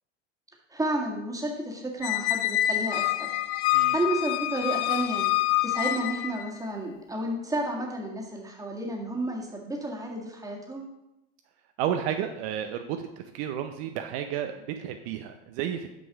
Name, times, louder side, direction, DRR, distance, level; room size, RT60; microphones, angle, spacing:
voice 1, 0.7-3.3 3.9-5.3 5.6-10.8, right 1 dB, 10° right, -1 dB, 1.7 m, -31 dB
Squeak, 2.0-6.5, left 15 dB, 65° left, 0.5 m, -26 dB
voice 2, 11.8-15.9, right 9 dB, 60° right, 6 dB, 0.6 m, -32 dB
6.1 x 5.3 x 4.7 m, 0.91 s
hypercardioid pair, 95°, 36 cm